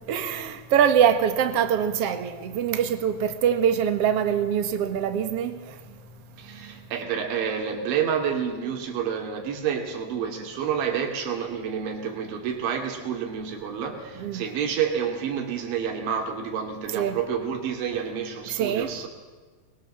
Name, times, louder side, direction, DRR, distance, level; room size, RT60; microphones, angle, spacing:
voice 1, 0.1-5.6 14.2-14.4 16.9-17.2 18.5-18.9, right 8 dB, 65° right, 1.5 m, -23 dB
voice 2, 6.4-19.1, right 7 dB, 85° right, 5.1 m, -29 dB
22.5 x 22.5 x 7.5 m
omnidirectional pair, 5.2 m